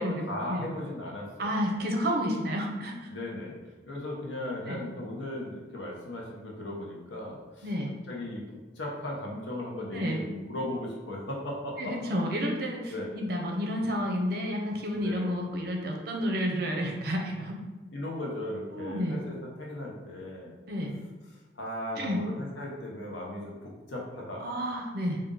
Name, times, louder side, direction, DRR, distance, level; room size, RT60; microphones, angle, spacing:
voice 1, 0.0-1.6 3.1-3.5 3.9-7.7 8.1-8.4 8.8-12.1 12.9-13.1 15.0-15.4 17.9-20.5 21.5-24.5, left 1 dB, 80° left, -2 dB, 0.9 m, -37 dB
voice 2, 1.4-2.9 4.7-4.8 7.6-7.9 9.9-10.2 11.8-17.6 18.7-19.2 20.7-20.9 22.0-22.2 24.4-25.2, equal, 55° right, 1 dB, 0.7 m, -30 dB
3.8 x 2.6 x 3.8 m, 1.2 s
head